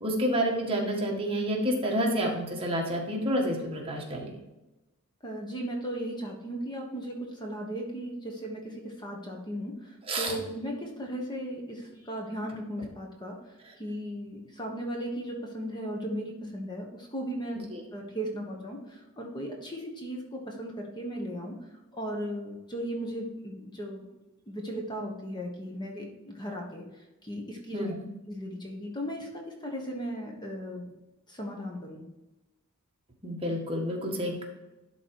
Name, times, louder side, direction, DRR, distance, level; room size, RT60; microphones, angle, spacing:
voice 1, 0.0-4.4 10.1-10.4 17.7-17.8 27.7-28.0 33.2-34.4, equal, 25° right, -1 dB, 1.7 m, -29 dB
voice 2, 5.2-13.4 13.8-21.5 21.9-24.1 24.5-27.9 28.3-30.8 31.3-32.0, equal, 20° left, 1 dB, 1.2 m, -36 dB
12.0 x 4.0 x 4.8 m, 1.0 s
head